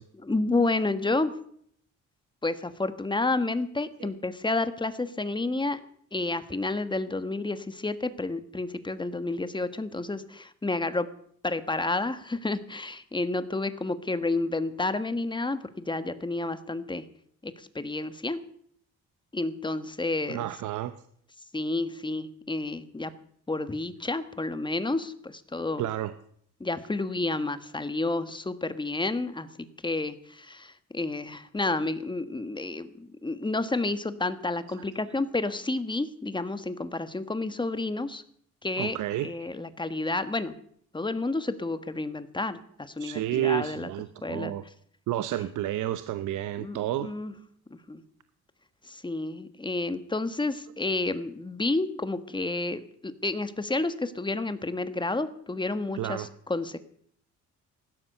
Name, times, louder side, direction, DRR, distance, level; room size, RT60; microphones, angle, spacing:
voice 1, 0.1-1.3 2.4-5.8 6.1-11.1 11.4-17.0 17.4-18.4 19.3-20.5 21.5-23.1 23.5-25.8 26.6-29.5 29.8-38.2 38.6-40.6 40.9-43.9 44.2-44.5 46.6-47.3 47.7-48.0 48.9-56.8, left 2 dB, 15° left, 12 dB, 1.5 m, -30 dB
voice 2, 20.3-20.9 25.8-26.1 34.8-34.9 38.8-39.5 43.0-44.6 45.1-47.1 55.9-56.3, right 13 dB, 80° right, 12 dB, 0.9 m, -31 dB
16.5 x 12.5 x 6.7 m, 0.64 s
cardioid pair, 90°, 30 cm